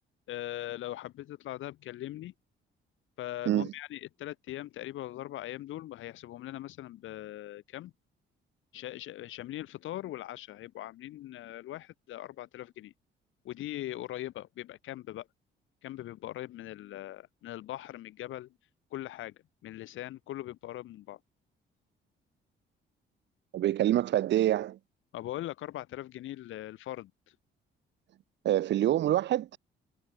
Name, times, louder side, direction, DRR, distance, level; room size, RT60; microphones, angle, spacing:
voice 1, 0.3-2.3 3.2-7.9 8.7-12.9 13.4-15.3 15.8-18.5 18.9-19.4 19.6-21.2 25.1-27.1, left 14 dB, 80° left, 1.8 m, -40 dB
voice 2, 23.5-24.8 28.4-29.6, right 13 dB, 65° right, 0.5 m, -26 dB
cardioid pair, 90°, 20 cm